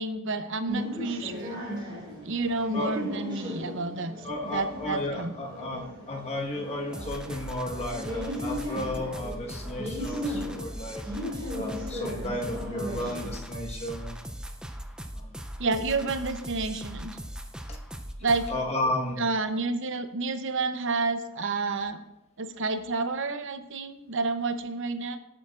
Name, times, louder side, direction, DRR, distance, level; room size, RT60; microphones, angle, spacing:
voice 1, 0.0-1.6 2.2-5.3 15.6-17.2 18.2-18.5 19.2-22.0 22.4-25.2, right 3 dB, 60° right, 9 dB, 0.8 m, -30 dB
sound 1, 0.7-13.4, equal, 20° right, 4.6 m, -36 dB
voice 2, 4.2-11.0 11.5-14.3 15.1-15.4 17.7-17.8 18.5-19.3, left 1 dB, 30° left, 0 dB, 1.4 m, -33 dB
sound 2, 6.9-18.6, equal, 5° right, 0.5 m, -39 dB
17.5 x 8.7 x 2.5 m, 0.91 s
head